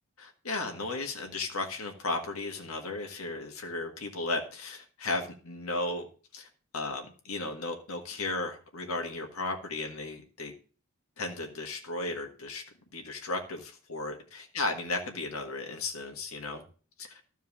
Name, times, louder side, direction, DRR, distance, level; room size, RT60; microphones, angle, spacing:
voice 1, 0.2-6.1 6.3-10.5 11.2-12.6 12.9-16.6 17.0-17.2, left 2 dB, 80° left, 3 dB, 1.7 m, -35 dB
13.0 x 4.6 x 7.2 m, 0.39 s
head